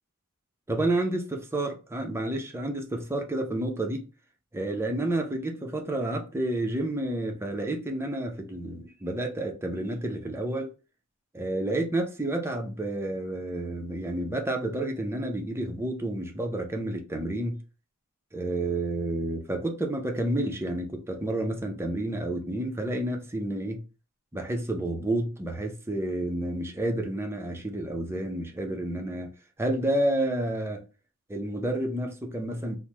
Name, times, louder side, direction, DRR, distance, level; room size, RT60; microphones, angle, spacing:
voice 1, 0.7-4.0 4.5-10.7 11.3-17.6 18.3-23.8 24.3-29.3 29.6-30.8 31.3-32.8, right 1 dB, 10° right, 0.5 m, -30 dB
2.9 x 2.0 x 3.3 m
head